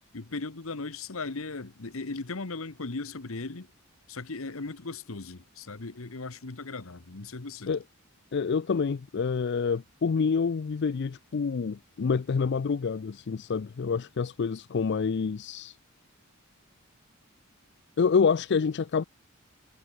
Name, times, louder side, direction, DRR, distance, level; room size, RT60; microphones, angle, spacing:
voice 1, 0.1-3.7 4.1-7.7, left 3 dB, 70° left, 1.2 m, -37 dB
voice 2, 8.3-15.8 18.0-19.0, left 5 dB, 55° left, 0.4 m, -27 dB
head